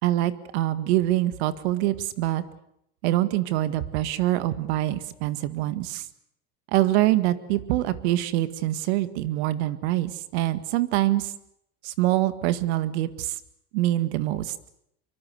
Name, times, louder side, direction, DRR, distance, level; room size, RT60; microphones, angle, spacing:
voice 1, 0.0-2.4 3.0-6.1 6.7-11.3 11.8-13.3 13.7-14.5, right 15 dB, 75° right, 13 dB, 1.9 m, -25 dB
24.0 x 24.0 x 8.1 m, 0.76 s
supercardioid pair, 110°, 33 cm